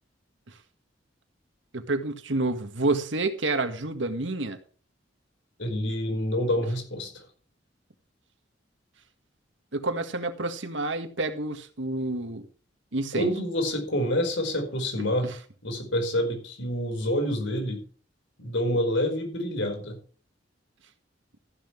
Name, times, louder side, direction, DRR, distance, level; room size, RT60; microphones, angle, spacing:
voice 1, 1.7-4.6 9.7-12.5 12.9-13.3 15.2-15.3, right 2 dB, 80° right, 8 dB, 1.9 m, -29 dB
voice 2, 5.6-7.2 13.1-15.3 15.6-17.8 18.4-20.0, left 1 dB, 75° left, 5 dB, 5.0 m, -27 dB
14.5 x 11.0 x 3.3 m, 0.40 s
head